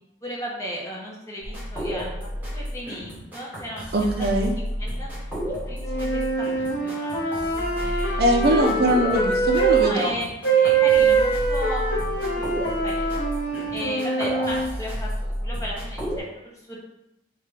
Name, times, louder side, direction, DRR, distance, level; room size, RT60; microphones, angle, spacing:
voice 1, 0.2-4.3 4.8-5.1 5.5-8.4 9.8-10.3 10.5-13.3 13.7-16.8, equal, 15° left, -3 dB, 0.8 m, -36 dB
sound 1, 1.4-16.2, equal, 10° right, 1.0 m, -31 dB
voice 2, 3.9-4.5 8.2-10.1, right 1 dB, 50° right, 3 dB, 0.5 m, -21 dB
sound 2, 5.8-9.9 10.4-14.7, right 4 dB, 60° left, 0.8 m, -23 dB
3.6 x 3.4 x 3.3 m, 0.87 s
head